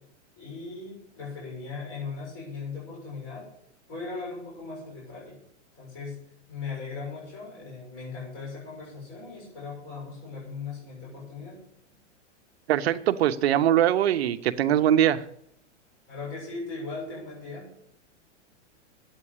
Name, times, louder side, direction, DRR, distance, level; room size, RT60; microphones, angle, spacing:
voice 1, 0.4-3.5 3.9-5.4 5.8-6.2 6.5-11.6 16.1-17.7, left 4 dB, 30° left, 6.9 m, -38 dB
voice 2, 12.7-15.2, right 11 dB, 55° right, 0.9 m, -22 dB
9.8 x 8.4 x 9.9 m
supercardioid pair, 170°, 36 cm